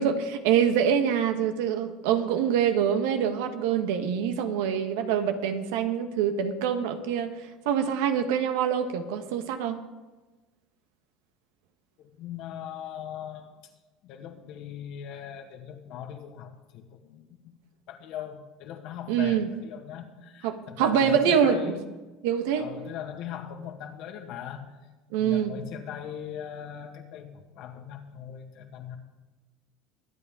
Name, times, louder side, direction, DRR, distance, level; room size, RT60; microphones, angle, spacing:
voice 1, 0.0-7.3 7.6-9.8 19.1-19.5 20.4-21.8 22.2-22.7 25.1-25.5, right 8 dB, 80° right, 7 dB, 1.3 m, -25 dB
voice 2, 12.0-13.5 14.0-17.3 17.9-21.8 22.5-24.6 25.2-29.0, left 9 dB, 65° left, 3 dB, 2.0 m, -39 dB
22.5 x 8.5 x 3.7 m, 1.2 s
supercardioid pair, 105°, 0 cm